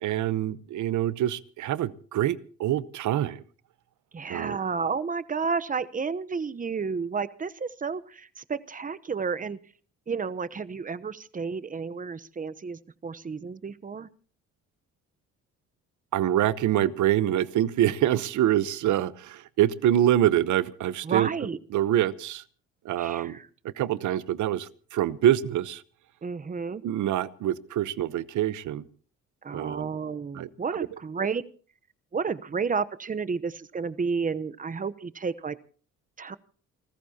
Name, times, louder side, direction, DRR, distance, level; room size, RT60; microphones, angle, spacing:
voice 1, 0.0-3.4 4.3-4.6 16.1-21.3 21.7-22.4 22.8-23.4 23.8-25.8 26.8-28.8 29.5-29.9 30.3-30.5, right 12 dB, 75° right, 17 dB, 0.9 m, -25 dB
voice 2, 4.1-9.6 10.1-14.1 21.0-21.6 23.0-23.5 26.2-26.8 29.4-31.4 32.1-35.6 36.2-36.4, right 5 dB, 25° right, 14 dB, 0.9 m, -31 dB
29.5 x 14.5 x 2.8 m, 0.41 s
cardioid pair, 90°, 30 cm